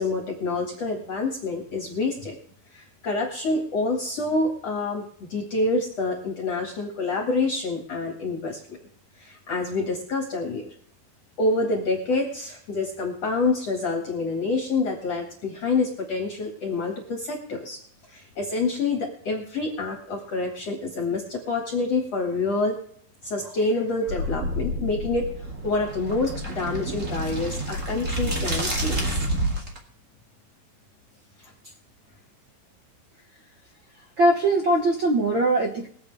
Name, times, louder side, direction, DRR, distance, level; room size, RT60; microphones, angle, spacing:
voice 1, 0.0-2.4 2.7-8.6 9.2-10.7 11.4-17.8 18.1-22.8 23.2-25.3 25.6-29.2, left 3 dB, 50° left, 1 dB, 2.7 m, -27 dB
sound 1, 24.1-29.8, right 1 dB, 25° right, 2.0 m, -29 dB
voice 2, 34.2-35.9, right 1 dB, 65° right, 2 dB, 1.2 m, -21 dB
23.0 x 8.1 x 3.5 m, 0.62 s
omnidirectional pair, 4.2 m